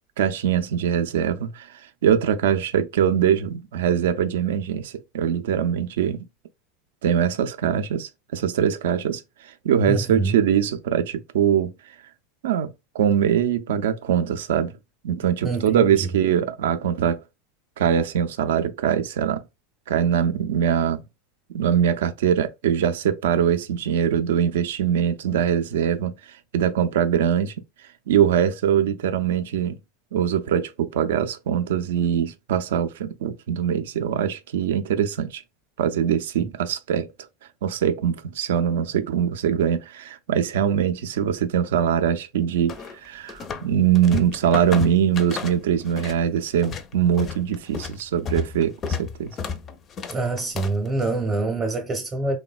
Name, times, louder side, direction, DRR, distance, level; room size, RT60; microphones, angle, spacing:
voice 1, 0.2-1.7 2.0-6.2 7.0-11.7 12.4-14.8 15.0-17.2 17.8-19.4 19.9-21.0 21.5-26.2 26.5-27.5 28.1-29.8 30.1-35.4 35.8-37.1 37.6-42.8 43.0-49.4, right 9 dB, 80° right, 0.4 m, -22 dB
voice 2, 9.9-10.4 15.4-16.1 36.4-36.5 50.1-52.4, right 3 dB, 25° right, 0.7 m, -26 dB
sound 1, 42.7-43.7 43.9-46.2 46.5-50.9, left 6 dB, 35° left, 0.4 m, -32 dB
3.1 x 2.1 x 2.3 m
hypercardioid pair, 105°, 0 cm